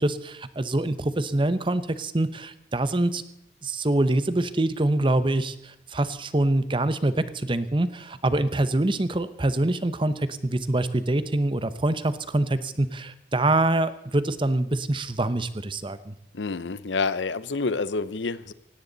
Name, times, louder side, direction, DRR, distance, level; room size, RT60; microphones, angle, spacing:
voice 1, 0.0-3.2 3.6-16.1, right 2 dB, 30° right, 13 dB, 0.8 m, -25 dB
voice 2, 16.3-18.5, left 4 dB, 90° left, 16 dB, 0.8 m, -28 dB
17.5 x 17.5 x 4.0 m, 0.83 s
head